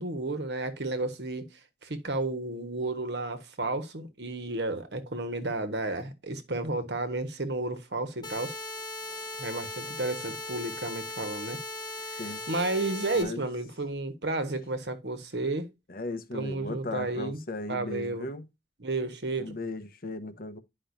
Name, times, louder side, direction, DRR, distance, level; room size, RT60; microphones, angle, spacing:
voice 1, 0.0-1.5 1.8-8.6 9.4-11.6 12.1-12.2 12.5-15.7 16.3-17.4 17.7-18.3 18.8-19.6, right 2 dB, 75° right, 1.4 m, -32 dB
sound 1, 8.2-13.2, left 1 dB, 25° left, 2.0 m, -38 dB
voice 2, 13.1-13.5 15.9-18.5 19.4-20.6, left 2 dB, 55° left, 1.1 m, -37 dB
10.0 x 5.4 x 2.7 m
head